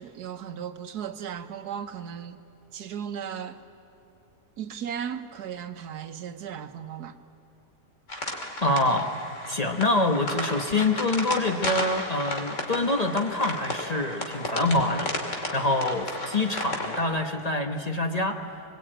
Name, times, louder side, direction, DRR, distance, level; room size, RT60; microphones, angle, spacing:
voice 1, 0.0-2.4 2.7-3.6 4.6-7.2, right 8 dB, 80° right, 1.5 m, -36 dB
sound 1, 8.1-17.0, left 1 dB, 50° left, 2.9 m, -33 dB
voice 2, 8.6-9.1 9.5-18.4, left 2 dB, 30° left, 1.1 m, -26 dB
25.5 x 20.5 x 8.9 m
omnidirectional pair, 1.7 m